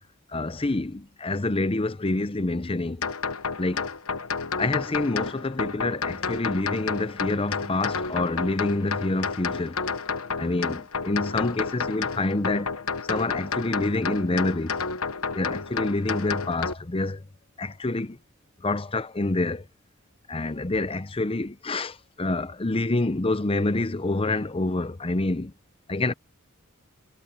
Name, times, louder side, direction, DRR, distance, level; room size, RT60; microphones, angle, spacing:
voice 1, 0.3-3.1 3.6-3.9 4.6-9.8 10.4-12.8 13.0-14.8 15.3-17.2 17.6-18.2 18.6-19.6 20.3-25.5 25.9-26.1, left 2 dB, 25° left, 0.7 m, -27 dB
sound 1, 3.0-16.7, left 5 dB, 75° left, 1.2 m, -31 dB
head